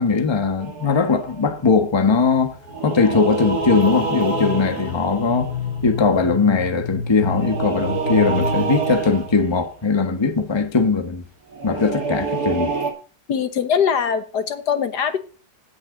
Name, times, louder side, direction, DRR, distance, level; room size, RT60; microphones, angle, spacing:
voice 1, 0.0-2.6 2.8-5.5 5.8-11.2 11.6-12.7, left 4 dB, 20° left, 1.1 m, -20 dB
sound 1, 0.6-1.5 2.6-6.2 7.2-9.6 11.5-12.9, right 4 dB, 60° right, 2.4 m, -27 dB
sound 2, 1.7-9.4, left 5 dB, 45° left, 1.2 m, -31 dB
voice 2, 13.3-15.2, left 7 dB, 70° left, 1.8 m, -21 dB
16.5 x 6.0 x 3.8 m
omnidirectional pair, 1.8 m